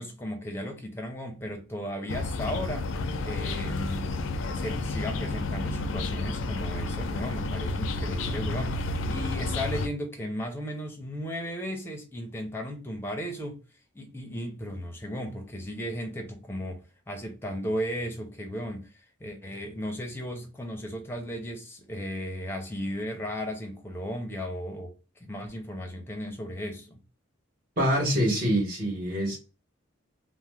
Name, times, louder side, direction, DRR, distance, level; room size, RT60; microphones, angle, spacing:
voice 1, 0.0-2.9 3.2-4.1 4.5-13.6 13.9-27.0, equal, 10° left, 0.5 m, -35 dB
sound 1, 2.1-9.9, left 2 dB, 65° left, 0.4 m, -31 dB
voice 2, 27.8-29.4, equal, 40° right, 1.1 m, -25 dB
2.9 x 2.0 x 3.3 m
head